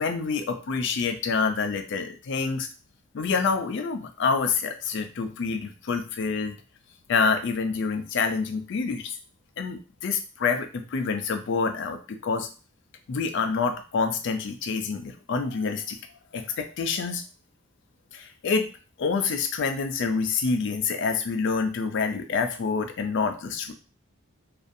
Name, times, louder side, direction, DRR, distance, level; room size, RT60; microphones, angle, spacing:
voice 1, 0.0-2.7 3.1-6.5 7.1-9.1 9.6-12.5 13.1-16.0 16.3-17.2 18.1-18.7 19.0-23.7, left 5 dB, 60° left, 6 dB, 0.4 m, -27 dB
2.5 x 2.4 x 2.5 m, 0.35 s
head